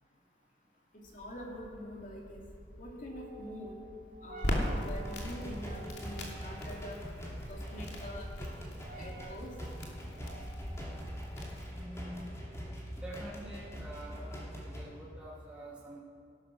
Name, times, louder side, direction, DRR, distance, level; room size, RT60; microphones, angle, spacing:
voice 1, 0.9-2.4 2.8-3.7 4.2-7.0 7.5-8.5 8.9-9.5, equal, 45° left, -1 dB, 2.8 m, -45 dB
sound 1, 1.0-14.4, right 1 dB, 55° right, 1.8 m, -51 dB
Crackle, 4.4-11.7, left 1 dB, 70° left, 2.9 m, -39 dB
sound 2, 5.0-14.9, equal, 15° left, 2.7 m, -43 dB
voice 2, 11.7-12.3 12.9-16.0, right 1 dB, 5° right, -7 dB, 2.4 m, -46 dB
16.5 x 12.5 x 6.3 m, 2.3 s
head